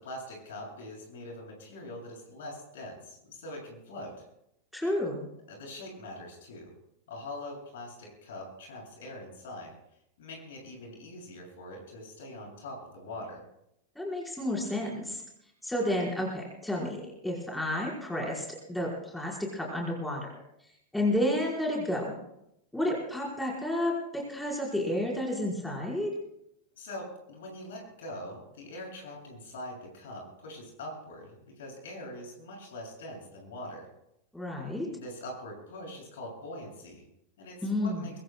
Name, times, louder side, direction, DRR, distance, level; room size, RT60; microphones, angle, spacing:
voice 1, 0.0-4.2 5.5-6.7 7.1-9.7 10.2-13.4 26.8-33.9 34.9-37.0 37.4-38.1, left 1 dB, 60° left, 0 dB, 7.2 m, -43 dB
voice 2, 4.7-5.3 13.9-15.2 15.6-20.3 20.9-22.2 22.7-26.1 34.3-34.9 37.6-38.1, left 1 dB, 5° left, -3 dB, 4.7 m, -31 dB
24.5 x 23.0 x 2.3 m, 0.80 s
figure-of-eight pair, 90°, 0 cm